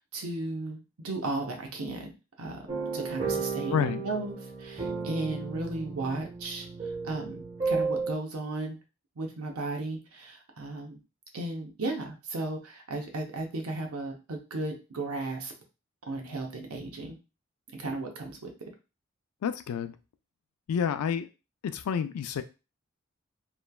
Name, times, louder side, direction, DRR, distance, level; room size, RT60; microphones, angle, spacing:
voice 1, 0.0-4.3 4.6-6.7 7.0-8.8 9.2-11.0 11.3-15.5 16.1-17.2 17.7-18.5, right 2 dB, 85° right, 3 dB, 0.7 m, -35 dB
sound 1, 2.7-8.1, right 4 dB, 30° right, 0.7 m, -33 dB
voice 2, 3.7-4.0 19.4-20.0 20.7-21.3 21.6-22.4, left 7 dB, 90° left, 11 dB, 0.3 m, -29 dB
3.0 x 2.2 x 2.3 m, 0.30 s
head